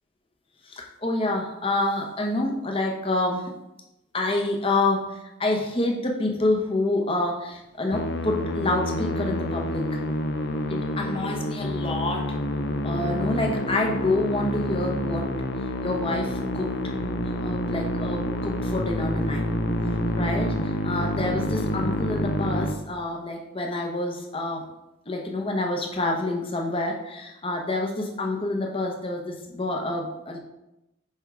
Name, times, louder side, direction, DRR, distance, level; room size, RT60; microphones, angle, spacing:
voice 1, 0.6-3.5 4.1-10.0 10.7-12.4 12.8-15.3 15.8-16.9 17.2-19.4 19.9-24.7 25.1-30.4, left 2 dB, 25° left, 1 dB, 0.9 m, -28 dB
Musical instrument, 7.9-22.7, left 1 dB, 55° left, 0.6 m, -28 dB
7.6 x 3.6 x 4.8 m, 0.92 s
head